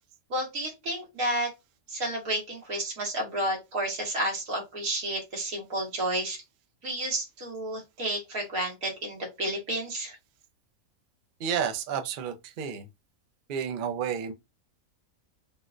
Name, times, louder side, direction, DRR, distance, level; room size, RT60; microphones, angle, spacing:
voice 1, 0.3-1.5 1.9-6.4 6.8-10.1, right 1 dB, 85° right, 1.8 m, -31 dB
voice 2, 11.4-12.9 13.5-14.3, right 7 dB, 65° right, 0.5 m, -31 dB
3.5 x 2.1 x 2.5 m
omnidirectional pair, 1.5 m